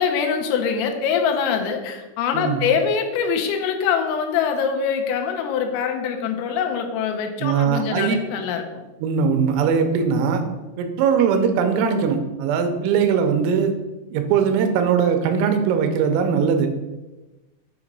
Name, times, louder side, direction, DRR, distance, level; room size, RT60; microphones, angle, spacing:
voice 1, 0.0-8.7, left 6 dB, 90° left, 4 dB, 3.4 m, -23 dB
voice 2, 7.4-8.2 9.0-10.4 10.8-13.7 14.1-16.7, right 6 dB, 85° right, 6 dB, 3.4 m, -20 dB
8.5 x 2.9 x 5.3 m, 1.1 s
omnidirectional pair, 5.8 m